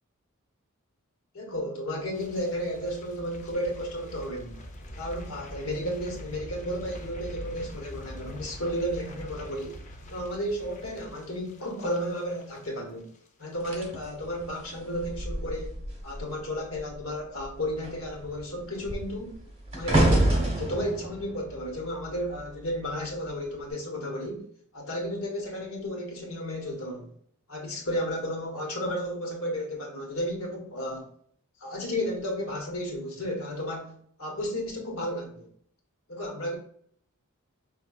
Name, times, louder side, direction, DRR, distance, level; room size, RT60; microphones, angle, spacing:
voice 1, 1.3-4.6 5.0-9.8 10.1-13.1 13.4-19.3 19.7-24.5 24.7-27.1 27.5-31.1 31.6-33.9 34.2-35.5 36.1-36.6, equal, 75° left, 0 dB, 1.4 m, -33 dB
sound 1, 2.1-13.3 13.5-13.9 14.2-14.3, equal, 35° left, 0.7 m, -44 dB
sound 2, 13.6-16.4 16.7-17.0 17.4-22.7 23.4-23.7, right 1 dB, 30° right, 1.3 m, -28 dB
5.6 x 3.4 x 2.4 m, 0.63 s
head